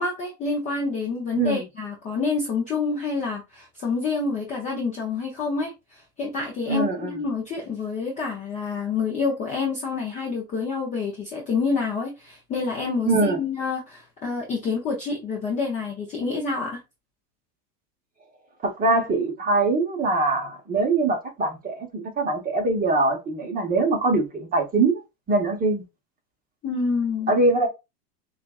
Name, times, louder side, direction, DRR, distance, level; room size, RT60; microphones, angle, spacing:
voice 1, 0.0-16.8 26.6-27.3, left 4 dB, 15° left, 0.5 m, -28 dB
voice 2, 6.7-7.1 13.0-13.4 18.6-25.0 25.3-25.8 27.3-27.7, right 3 dB, 20° right, 0.9 m, -23 dB
6.4 x 2.4 x 2.3 m
supercardioid pair, 150°, 49 cm